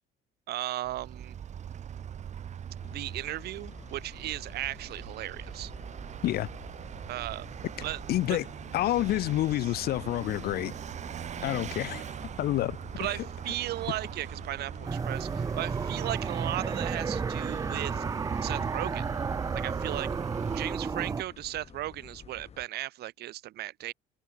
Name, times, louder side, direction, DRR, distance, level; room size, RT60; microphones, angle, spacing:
voice 1, 0.5-1.4 2.9-5.7 7.1-7.5 7.8-8.0 8.3-8.4 9.6-9.7 13.0-18.0 18.4-19.0 19.5-20.1 20.5-23.9, right 15 dB, 70° right, 2.2 m, -36 dB
Vehicle, 0.8-20.7, right 9 dB, 45° right, 1.1 m, -41 dB
sound 1, 2.8-22.7, left 7 dB, 40° left, 4.4 m, -51 dB
voice 2, 8.1-8.5 8.7-10.7 11.4-12.8, left 15 dB, 65° left, 0.7 m, -28 dB
sound 2, 14.8-21.2, right 5 dB, 20° right, 0.5 m, -32 dB
cardioid pair, 110°, 17 cm